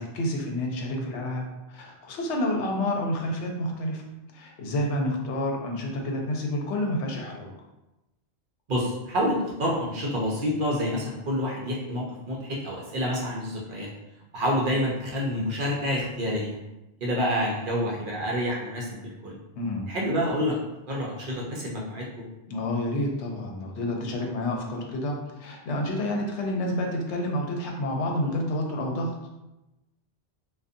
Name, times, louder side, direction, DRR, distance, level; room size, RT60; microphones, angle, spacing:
voice 1, 0.0-4.0 4.3-7.5 19.6-19.9 22.5-29.1, left 1 dB, 80° left, 1 dB, 0.9 m, -29 dB
voice 2, 8.7-13.9 14.3-16.6 17.0-19.4 19.9-20.6 20.9-22.2, equal, 60° right, -3 dB, 0.6 m, -28 dB
2.5 x 2.3 x 2.5 m, 0.97 s
omnidirectional pair, 1.2 m